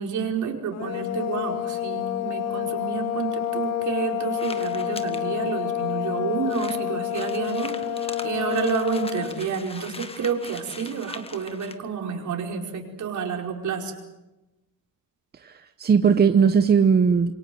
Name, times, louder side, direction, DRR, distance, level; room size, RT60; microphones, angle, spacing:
voice 1, 0.0-13.9, right 6 dB, 55° right, 2 dB, 4.9 m, -29 dB
sound 1, 0.7-9.4, left 11 dB, 50° left, 1.9 m, -29 dB
sound 2, 4.3-5.2 5.9-6.0 6.2-6.3 6.5-11.8, left 3 dB, 15° left, 1.5 m, -41 dB
voice 2, 15.4-17.3, right 6 dB, 30° right, 9 dB, 0.9 m, -19 dB
27.5 x 23.0 x 7.8 m, 1.0 s
cardioid pair, 145°, 35 cm